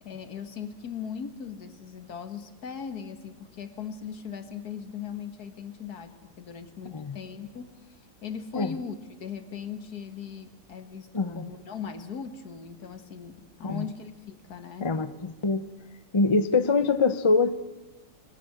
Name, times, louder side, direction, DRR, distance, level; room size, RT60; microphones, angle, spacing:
voice 1, 0.0-15.0, left 7 dB, 65° left, 10 dB, 2.1 m, -39 dB
voice 2, 11.1-11.4 13.6-13.8 14.8-15.1 15.4-15.6 16.1-17.5, left 3 dB, 25° left, 13 dB, 0.6 m, -23 dB
22.5 x 20.0 x 7.9 m, 1.1 s
omnidirectional pair, 1.8 m